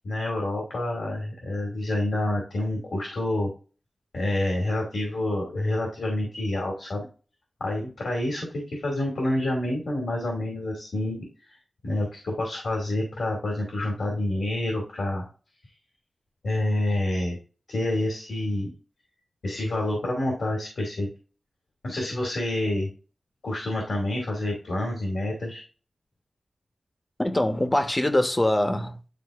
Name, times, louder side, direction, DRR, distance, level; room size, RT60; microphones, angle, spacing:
voice 1, 0.0-3.5 4.1-7.1 7.6-11.6 11.8-15.3 16.4-17.4 17.7-18.7 19.4-21.1 21.8-22.9 23.4-25.6, left 1 dB, 85° left, 2.4 m, -28 dB
voice 2, 27.2-29.1, left 1 dB, 20° left, 1.0 m, -23 dB
10.5 x 3.7 x 2.5 m
wide cardioid pair, 90°, 0 cm